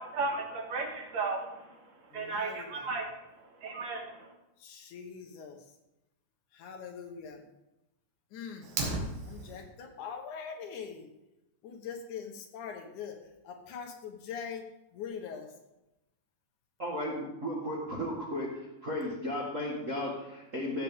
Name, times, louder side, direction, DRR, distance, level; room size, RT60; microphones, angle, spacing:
voice 1, 0.0-1.7 2.1-3.0 3.6-4.3, right 3 dB, 65° right, 2 dB, 2.3 m, -34 dB
voice 2, 2.1-2.8 4.6-5.6 6.5-7.4 8.3-8.7 9.2-11.1 11.6-13.2 13.4-14.6 14.9-15.5, left 7 dB, 70° left, 3 dB, 2.5 m, -42 dB
Fire, 8.6-9.6, right 3 dB, 90° right, 3.3 m, -34 dB
voice 3, 16.8-18.5 18.8-20.8, left 1 dB, 40° right, -4 dB, 1.2 m, -34 dB
15.0 x 7.5 x 3.6 m, 0.94 s
omnidirectional pair, 3.8 m